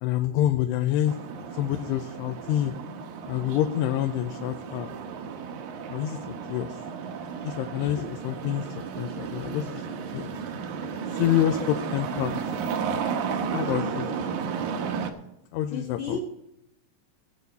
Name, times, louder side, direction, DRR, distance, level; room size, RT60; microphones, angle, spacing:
voice 1, 0.0-1.1 1.6-2.7 3.3-4.9 5.9-6.2 6.5-6.7 7.4-8.6 9.0-10.3 11.2-12.4 13.5-14.1 15.5-16.2, left 12 dB, 85° left, 5 dB, 2.7 m, -27 dB
sound 1, 1.0-15.1, right 6 dB, 75° right, 1.8 m, -33 dB
voice 2, 11.4-11.9 13.4-14.2 15.7-16.2, left 5 dB, 70° left, 1 dB, 1.7 m, -36 dB
19.0 x 8.0 x 4.1 m, 0.84 s
omnidirectional pair, 4.8 m